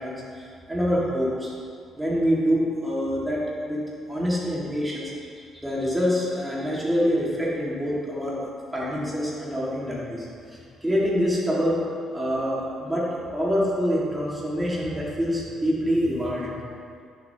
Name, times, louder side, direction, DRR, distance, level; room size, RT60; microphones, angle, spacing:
voice 1, 0.0-1.5 1.9-3.8 4.1-8.4 8.7-11.9 12.1-16.6, equal, 10° right, -6 dB, 2.0 m, -26 dB
10.0 x 6.9 x 3.0 m, 2.2 s
cardioid pair, 125°, 0 cm